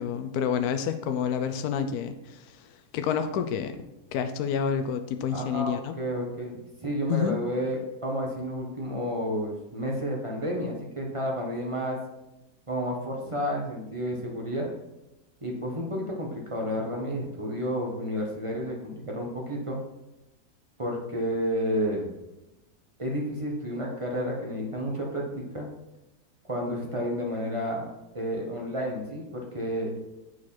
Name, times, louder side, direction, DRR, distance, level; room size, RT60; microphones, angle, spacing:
voice 1, 0.0-2.6 2.9-3.8 4.1-5.9 7.1-7.4, left 7 dB, 70° left, 9 dB, 1.0 m, -29 dB
voice 2, 5.3-12.0 12.7-14.7 15.4-19.8 20.8-22.1 23.0-25.7 26.5-27.8 28.1-29.9, equal, 20° right, -1 dB, 1.1 m, -31 dB
8.5 x 4.8 x 4.2 m, 0.96 s
omnidirectional pair, 1.8 m